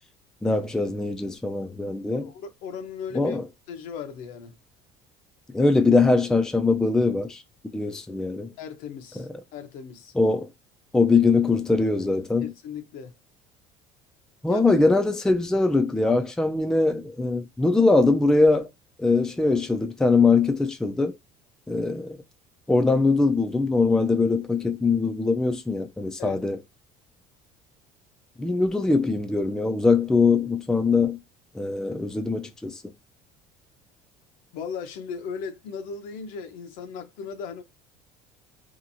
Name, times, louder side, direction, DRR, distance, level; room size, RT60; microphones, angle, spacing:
voice 1, 0.4-2.3 3.1-3.4 5.5-7.4 7.7-8.5 9.2-9.3 10.1-10.5 10.9-12.5 14.4-18.7 19.0-21.1 21.7-22.2 22.7-26.6 28.4-31.2 31.5-32.8, left 3 dB, 5° left, 0.4 m, -22 dB
voice 2, 2.1-3.4 3.7-4.6 8.6-10.1 12.4-13.1 14.5-14.6 26.2-26.4 34.5-37.6, left 6 dB, 70° left, 0.7 m, -37 dB
2.8 x 2.4 x 2.6 m
cardioid pair, 125°, 14 cm